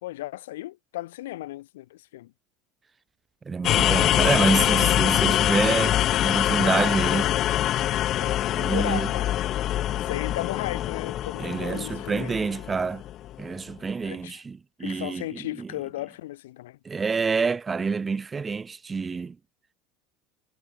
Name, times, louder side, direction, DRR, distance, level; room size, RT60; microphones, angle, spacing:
voice 1, 0.0-2.3 6.6-7.3 8.1-9.3 9.9-12.4 14.0-14.4 14.8-16.8, left 16 dB, 65° left, 3.4 m, -35 dB
voice 2, 3.5-7.3 8.5-9.1 11.4-13.0 13.4-15.7 16.8-19.4, right 5 dB, 20° right, 2.3 m, -27 dB
sound 1, 3.6-13.4, left 13 dB, 45° left, 1.4 m, -24 dB
figure-of-eight pair, 70°, 0 cm